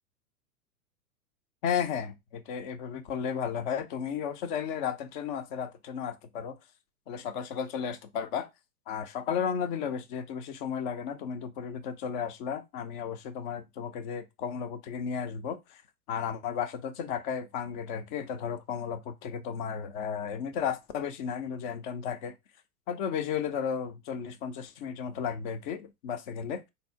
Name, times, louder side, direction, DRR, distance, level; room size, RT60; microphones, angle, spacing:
voice 1, 1.6-6.6 7.1-8.5 8.9-15.8 16.1-22.4 22.9-26.7, left 7 dB, 30° left, 0.7 m, -34 dB
4.0 x 2.8 x 4.3 m
figure-of-eight pair, 110°, 46 cm